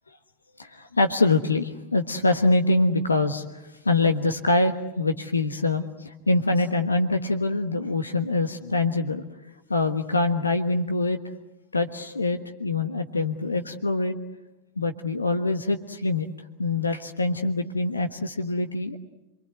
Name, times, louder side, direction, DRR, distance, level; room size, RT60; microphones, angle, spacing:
voice 1, 0.6-3.4 3.8-9.2 9.7-11.2 11.7-14.2 14.8-16.3 16.6-19.0, left 2 dB, 80° left, 7 dB, 1.3 m, -24 dB
26.5 x 24.5 x 8.0 m, 1.0 s
figure-of-eight pair, 90°, 0 cm